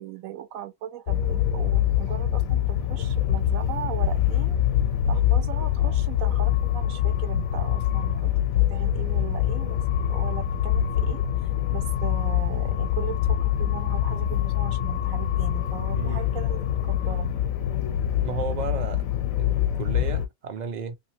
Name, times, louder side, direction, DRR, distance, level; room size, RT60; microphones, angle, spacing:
voice 1, 0.0-4.6 5.1-9.8 10.1-17.3, right 11 dB, 90° right, 1.1 m, -38 dB
sound 1, 1.1-20.3, left 11 dB, 85° left, 1.0 m, -24 dB
voice 2, 18.2-19.0 19.4-21.0, right 5 dB, 55° right, 0.5 m, -33 dB
2.8 x 2.7 x 3.0 m
omnidirectional pair, 1.4 m